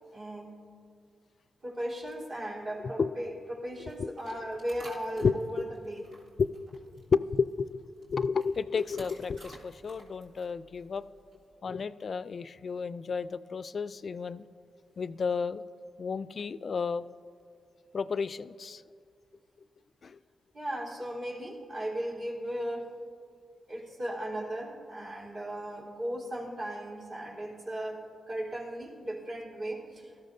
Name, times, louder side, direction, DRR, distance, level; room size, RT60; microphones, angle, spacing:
voice 1, 0.1-0.6 1.6-6.0 20.5-22.9 23.7-30.3, right 1 dB, 60° right, -4 dB, 3.4 m, -37 dB
sound 1, 3.7-11.6, right 1 dB, 85° right, 1.9 m, -55 dB
voice 2, 6.4-11.0 11.6-14.4 15.0-15.6 16.0-17.0 17.9-18.8 20.0-20.2, left 5 dB, 55° left, 15 dB, 0.3 m, -32 dB
17.0 x 12.5 x 2.7 m, 2.4 s
supercardioid pair, 50°, 0 cm